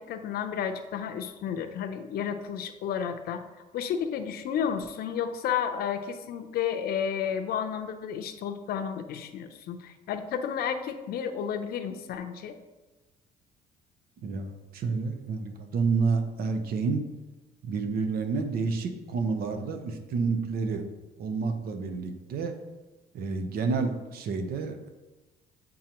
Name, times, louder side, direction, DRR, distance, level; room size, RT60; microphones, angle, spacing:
voice 1, 0.0-12.5, left 8 dB, 65° left, 7 dB, 0.6 m, -32 dB
voice 2, 14.2-17.1 17.6-20.9 21.2-22.5 23.1-24.9, right 4 dB, 65° right, 7 dB, 0.8 m, -29 dB
8.5 x 3.9 x 3.0 m, 1.2 s
cardioid pair, 110°, 17 cm